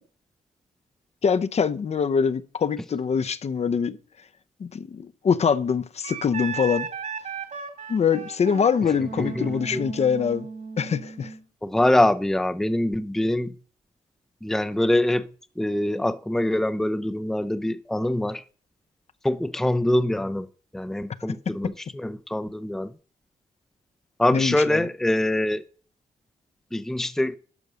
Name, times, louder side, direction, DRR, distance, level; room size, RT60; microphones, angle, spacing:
voice 1, 1.2-4.0 4.6-6.9 7.9-10.5 10.8-11.3 24.3-24.9, left 6 dB, 45° left, 0.7 m, -24 dB
Wind instrument woodwind instrument, 6.0-11.4, right 6 dB, 55° right, 2.3 m, -35 dB
voice 2, 11.6-13.5 14.4-15.3 15.6-18.4 19.2-20.5 20.7-22.9 24.2-25.6 26.7-27.4, left 1 dB, 5° left, 0.5 m, -24 dB
12.0 x 5.4 x 6.2 m
cardioid pair, 105°, 15 cm